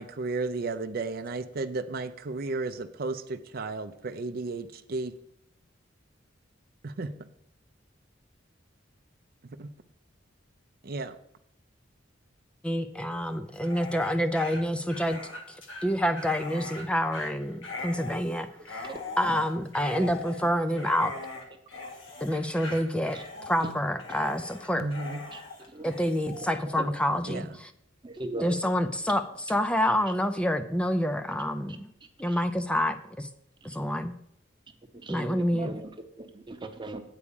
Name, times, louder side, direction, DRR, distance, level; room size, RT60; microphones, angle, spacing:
voice 1, 0.0-5.1 6.8-7.1 9.6-9.7 10.8-11.2 24.8-25.2 27.2-27.4, right 3 dB, 50° right, 8 dB, 0.5 m, -33 dB
voice 2, 12.6-15.2 15.5-18.9 19.2-21.1 22.2-23.2 23.5-24.9 25.8-27.7 28.4-31.9 32.2-33.3 33.6-34.1 35.1-35.7, equal, 5° left, 8 dB, 0.4 m, -28 dB
Dog, 13.5-26.5, left 3 dB, 75° left, 1.9 m, -41 dB
voice 3, 18.8-19.4 20.0-20.1 23.6-23.7 25.3-25.4 25.7-25.9 26.4-26.9 28.0-28.5 32.3-32.4 35.0-35.9 36.2-37.0, right 2 dB, 25° right, 6 dB, 0.8 m, -38 dB
8.4 x 4.8 x 7.0 m, 0.76 s
head